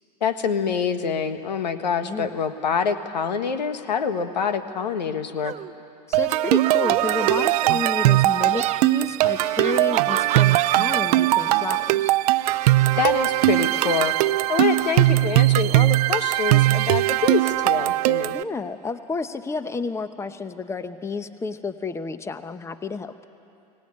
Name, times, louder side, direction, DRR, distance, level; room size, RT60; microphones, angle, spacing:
voice 1, 0.2-5.5 13.0-14.1 14.5-18.3, left 6 dB, 90° left, 10 dB, 1.4 m, -26 dB
voice 2, 2.0-2.4 6.1-12.1 18.3-23.1, left 4 dB, 15° left, 11 dB, 1.0 m, -31 dB
sound 1, 5.4-5.7 6.5-7.9 8.4-8.8 9.6-11.0, right 12 dB, 35° right, 0.7 m, -30 dB
sound 2, 6.1-18.4, right 17 dB, 65° right, 0.5 m, -20 dB
Alarm, 7.0-7.6 8.1-8.7 9.2-9.8 10.3-10.9 11.4-12.0 12.5-13.0 13.6-14.1 14.6-15.1, right 4 dB, 15° right, 2.5 m, -40 dB
24.0 x 18.0 x 9.7 m, 2.6 s
hypercardioid pair, 105°, 21 cm